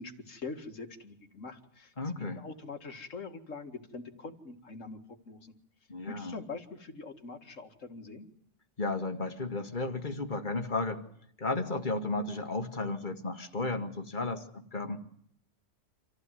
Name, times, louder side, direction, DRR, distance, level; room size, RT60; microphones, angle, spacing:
voice 1, 0.0-5.0 5.3-5.5 6.1-8.3, left 3 dB, 85° left, 6 dB, 2.4 m, -43 dB
voice 2, 2.0-2.4 5.9-6.4 8.8-11.0 11.4-15.0, left 3 dB, 40° left, 7 dB, 2.2 m, -34 dB
27.0 x 15.5 x 9.3 m, 0.69 s
omnidirectional pair, 1.3 m